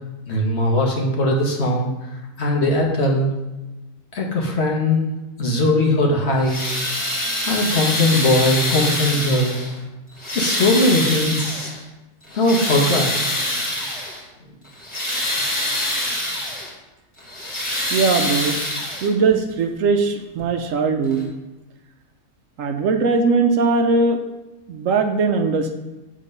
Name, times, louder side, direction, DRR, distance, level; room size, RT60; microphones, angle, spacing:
voice 1, 0.3-1.9 2.4-3.3 4.1-5.1 5.4-6.6 7.5-9.6 10.3-11.7 12.3-13.2, left 1 dB, 50° left, -1 dB, 1.3 m, -19 dB
sound 1, 6.3-9.8 10.2-11.8 12.2-14.2 14.6-16.7 17.2-19.3 20.4-20.5 21.1-21.2, left 1 dB, 20° left, 1.6 m, -25 dB
voice 2, 17.9-18.6 19.0-21.3 22.6-24.2 24.7-25.7, right 4 dB, 70° right, 6 dB, 1.0 m, -20 dB
7.5 x 3.7 x 5.3 m, 1.1 s
omnidirectional pair, 1.5 m